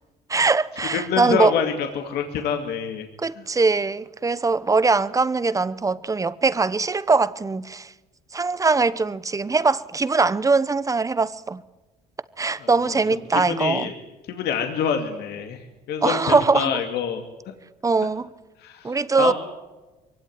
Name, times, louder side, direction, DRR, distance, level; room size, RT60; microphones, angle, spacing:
voice 1, 0.3-1.5 3.2-7.9 8.3-11.6 12.4-13.9 16.0-16.7 17.8-18.3 18.8-19.3, right 4 dB, 20° right, 0.9 m, -21 dB
voice 2, 0.9-3.1 3.4-3.5 12.6-13.0 13.3-13.9 14.3-17.2 18.6-19.3, left 7 dB, 75° left, 2.3 m, -27 dB
23.0 x 17.0 x 9.7 m
cardioid pair, 110°, 17 cm